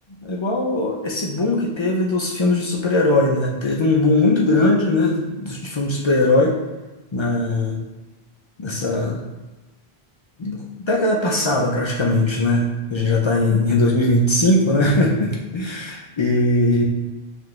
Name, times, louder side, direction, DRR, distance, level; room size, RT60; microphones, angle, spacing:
voice 1, 0.2-6.5 7.1-7.8 8.6-9.3 10.4-10.6 10.8-16.8, left 2 dB, 50° left, -2 dB, 0.3 m, -20 dB
4.7 x 2.5 x 3.1 m, 1.1 s
omnidirectional pair, 1.1 m